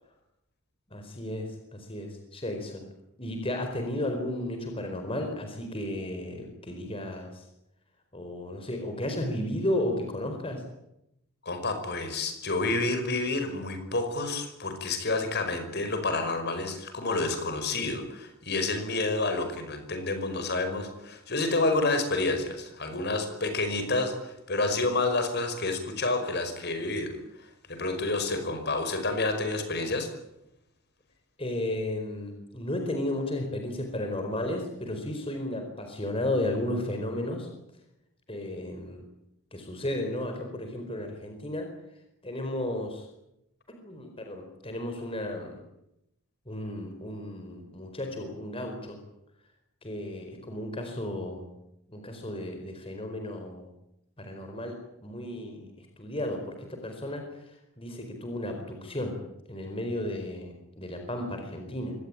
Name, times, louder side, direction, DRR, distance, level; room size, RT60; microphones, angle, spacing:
voice 1, 0.9-2.8 3.2-7.4 8.1-10.6 31.4-37.5 38.3-39.1 39.5-41.7 42.2-43.1 43.8-45.6 46.5-49.0 49.8-51.5 51.9-53.7 54.2-59.1 59.5-61.9, left 1 dB, 25° left, 4 dB, 4.6 m, -34 dB
voice 2, 11.4-27.1 27.7-30.1, left 2 dB, 50° left, 7 dB, 5.3 m, -29 dB
24.5 x 19.0 x 9.0 m, 0.84 s
head